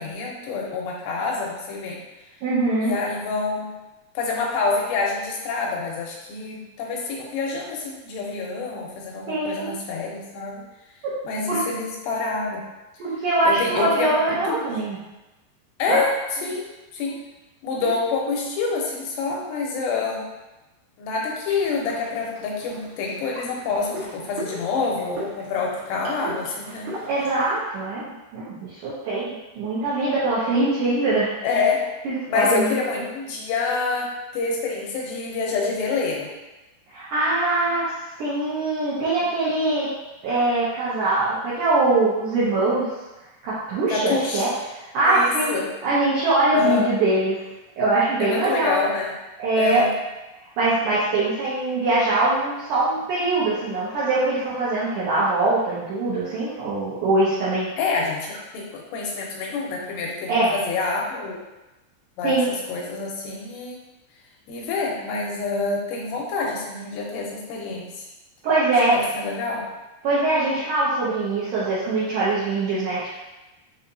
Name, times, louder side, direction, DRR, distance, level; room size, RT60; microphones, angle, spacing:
voice 1, 0.0-2.0 2.8-3.7 4.2-10.6 11.2-12.6 13.5-14.8 15.8-16.1 16.4-16.6 16.9-17.2 17.6-20.3 21.0-26.9 31.4-31.9 32.3-36.3 43.9-44.5 45.1-45.7 46.5-46.8 48.2-49.2 49.6-50.0 57.8-61.4 62.2-63.8 64.5-68.1 68.9-69.7, left 4 dB, 80° left, -2 dB, 2.8 m, -27 dB
voice 2, 2.4-3.0 9.3-9.8 11.5-11.6 13.0-15.0 15.9-16.0 16.4-16.5 17.8-17.9 27.1-31.3 32.1-32.7 36.9-37.9 38.2-39.9 40.2-42.9 43.4-45.5 45.8-47.4 47.8-48.8 49.4-49.8 50.6-57.7 60.3-60.5 62.2-62.5 68.4-69.0 70.0-73.2, right 2 dB, 85° right, -9 dB, 1.8 m, -22 dB
sound 1, 21.5-27.6, right 1 dB, 65° right, 2.6 m, -39 dB
6.6 x 2.8 x 2.6 m, 1.0 s
omnidirectional pair, 5.0 m